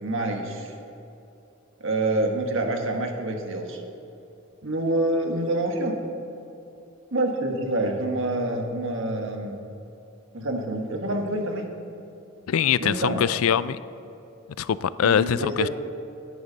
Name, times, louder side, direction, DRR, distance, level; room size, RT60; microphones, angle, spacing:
voice 1, 0.0-0.7 1.8-3.8 4.6-6.0 7.1-9.6 10.3-11.6 12.8-13.3 15.0-15.7, right 1 dB, 65° right, 3 dB, 1.6 m, -27 dB
voice 2, 12.5-13.8 14.6-15.7, left 8 dB, 80° left, 17 dB, 0.4 m, -23 dB
17.5 x 10.0 x 4.0 m, 2.9 s
head